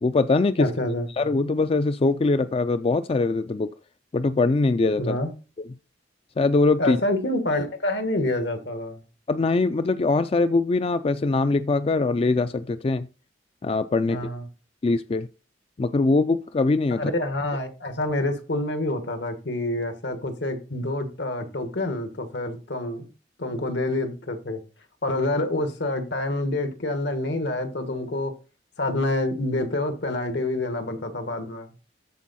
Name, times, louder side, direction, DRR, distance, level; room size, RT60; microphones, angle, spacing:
voice 1, 0.0-0.7 1.2-3.7 4.1-5.2 6.4-7.0 9.3-13.1 13.6-14.2 14.8-15.3 15.8-17.0, left 3 dB, 35° left, 0.4 m, -22 dB
voice 2, 0.6-1.1 5.0-5.3 6.8-9.0 14.0-14.5 17.0-23.1 23.4-24.6 25.0-28.3 28.8-31.7, left 1 dB, 75° left, 1.6 m, -27 dB
13.5 x 4.6 x 4.2 m
head